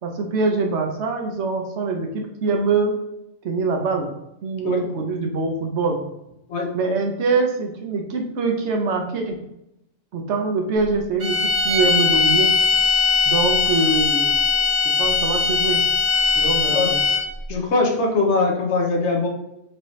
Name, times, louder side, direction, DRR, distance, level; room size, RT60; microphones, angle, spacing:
voice 1, 0.0-3.0 3.4-4.1 4.4-6.0 6.7-9.4 10.1-12.6 13.3-14.3 15.0-15.8 16.4-17.0, right 4 dB, 70° right, 3 dB, 0.9 m, -23 dB
sound 1, 11.2-17.4, left 5 dB, 40° right, 1.1 m, -20 dB
voice 2, 17.5-19.3, left 3 dB, 65° left, 1 dB, 1.1 m, -21 dB
4.6 x 2.8 x 3.0 m, 0.84 s
omnidirectional pair, 1.3 m